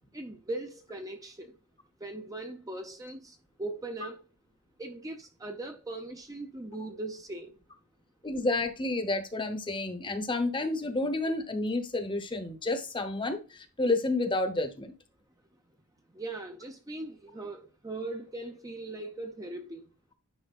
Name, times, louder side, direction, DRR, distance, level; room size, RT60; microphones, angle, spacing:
voice 1, 0.1-1.5 2.0-4.2 4.8-7.6 16.1-19.9, right 2 dB, 15° right, 0.6 m, -39 dB
voice 2, 8.2-15.0, left 2 dB, 20° left, 1.0 m, -30 dB
10.5 x 5.0 x 2.5 m
head